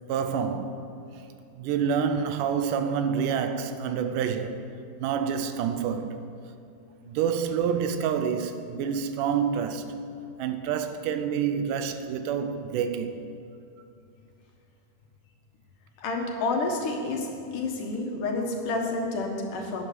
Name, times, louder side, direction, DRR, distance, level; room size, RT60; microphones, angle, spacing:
voice 1, 0.1-0.8 1.6-4.6 5.0-6.2 7.0-9.9 10.4-13.2, right 7 dB, 80° right, 2.3 m, -28 dB
voice 2, 16.0-19.8, left 3 dB, 80° left, 3.1 m, -29 dB
11.5 x 7.9 x 9.2 m
omnidirectional pair, 3.7 m